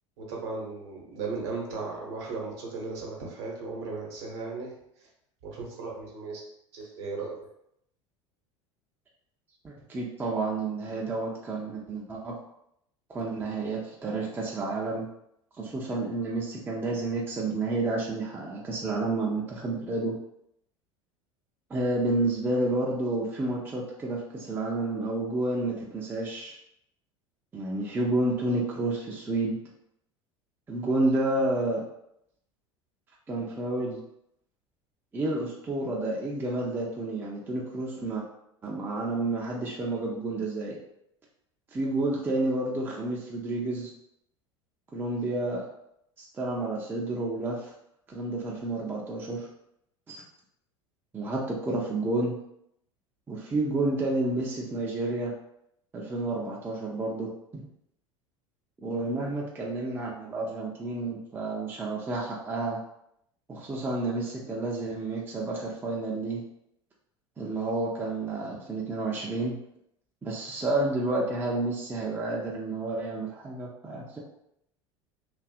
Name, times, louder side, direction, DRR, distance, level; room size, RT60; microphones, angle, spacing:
voice 1, 0.2-4.7 5.4-6.4 6.7-7.3, right 4 dB, 55° right, -2 dB, 0.9 m, -36 dB
voice 2, 9.6-12.3 13.1-15.1 15.6-20.1 21.7-26.6 27.5-29.6 30.7-31.8 33.3-34.0 35.1-38.2 38.6-40.8 41.7-43.9 44.9-45.7 46.2-47.7 48.1-49.5 50.1-50.2 51.1-52.4 53.3-55.3 55.9-57.7 58.8-62.8 63.5-66.4 67.4-69.6 70.2-74.2, right 2 dB, 10° right, -3 dB, 0.4 m, -30 dB
2.6 x 2.3 x 2.4 m, 0.77 s
figure-of-eight pair, 75°, 16 cm